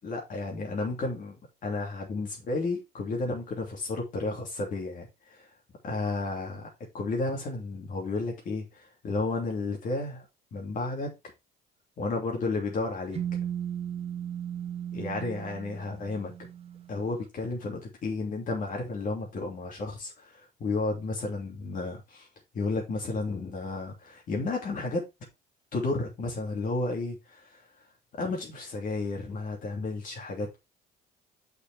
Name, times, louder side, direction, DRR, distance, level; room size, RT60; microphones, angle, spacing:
voice 1, 0.0-1.4 1.6-5.5 5.8-6.7 6.9-10.2 10.5-11.1 12.0-13.2 14.9-16.3 16.9-22.3 22.5-25.1 25.7-27.6 28.2-30.6, left 3 dB, 50° left, 3.0 m, -32 dB
sound 1, 13.1-17.0, right 9 dB, 35° right, 1.0 m, -36 dB
6.5 x 5.4 x 4.5 m
cardioid pair, 110°, 17 cm